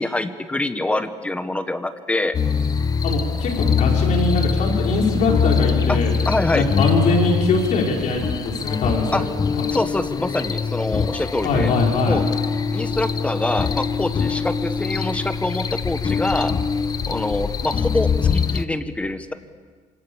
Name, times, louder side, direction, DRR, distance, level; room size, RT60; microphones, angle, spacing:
voice 1, 0.0-2.3 5.9-6.0 6.2-6.7 9.1-9.2 9.7-11.7 12.0-12.2 12.7-16.5 17.1-19.3, left 2 dB, 10° left, 9 dB, 1.4 m, -25 dB
sound 1, 2.3-18.7, left 6 dB, 30° left, 1.0 m, -23 dB
voice 2, 3.0-6.1 6.5-9.3 9.6-9.7 11.4-12.2, left 3 dB, 60° left, 0 dB, 5.5 m, -22 dB
27.0 x 26.5 x 7.3 m, 1.5 s
cardioid pair, 140°, 14 cm